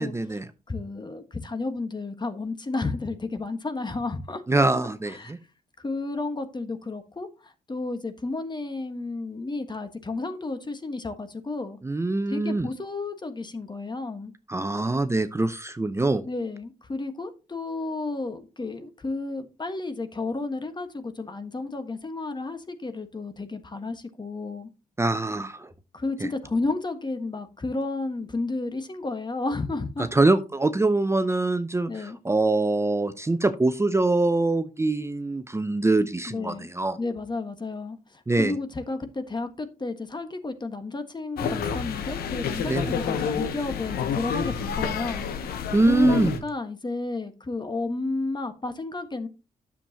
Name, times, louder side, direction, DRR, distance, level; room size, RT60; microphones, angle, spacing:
voice 1, 0.0-0.5 4.5-5.4 11.8-12.7 14.5-16.2 25.0-25.7 26.2-26.3 30.1-37.0 38.3-38.6 42.7-42.9 45.7-46.3, right 2 dB, 15° right, 0.7 m, -24 dB
voice 2, 0.7-4.4 5.1-5.3 5.8-11.8 12.3-14.3 16.2-24.7 25.9-30.1 31.9-32.2 36.3-36.7 37.0-45.6 45.9-49.3, left 3 dB, 30° left, 1.4 m, -32 dB
sound 1, 41.4-46.4, left 7 dB, 75° left, 1.0 m, -29 dB
9.9 x 7.3 x 2.9 m
supercardioid pair, 50°, 16 cm